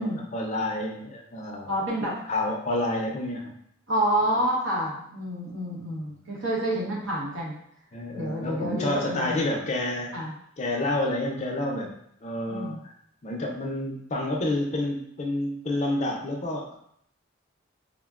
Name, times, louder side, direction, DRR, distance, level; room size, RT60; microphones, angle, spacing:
voice 1, 0.0-3.6 4.2-4.3 6.1-6.2 7.9-10.2 10.6-11.9 12.2-12.9 13.2-16.8, left 1 dB, 35° left, 0 dB, 0.4 m, -29 dB
voice 2, 1.7-2.2 3.9-7.6 8.1-9.5 10.1-10.3 12.5-12.8, right 1 dB, 75° right, -4 dB, 0.9 m, -28 dB
3.6 x 2.1 x 2.3 m, 0.70 s
head